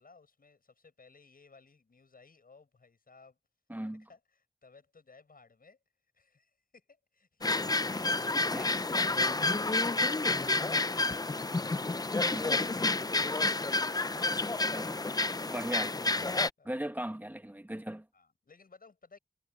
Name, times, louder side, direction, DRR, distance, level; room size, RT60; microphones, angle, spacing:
voice 1, 0.0-3.4 3.8-5.8 6.1-8.9 16.6-16.9 18.1-19.2, left 4 dB, 60° left, 6.9 m, -59 dB
voice 2, 3.7-4.0 8.3-9.4 12.3-12.5 14.6-16.0 16.6-18.1, right 1 dB, 10° right, 2.0 m, -39 dB
sound 1, 7.4-16.5, left 3 dB, 25° left, 0.5 m, -30 dB
wide cardioid pair, 90°, 17 cm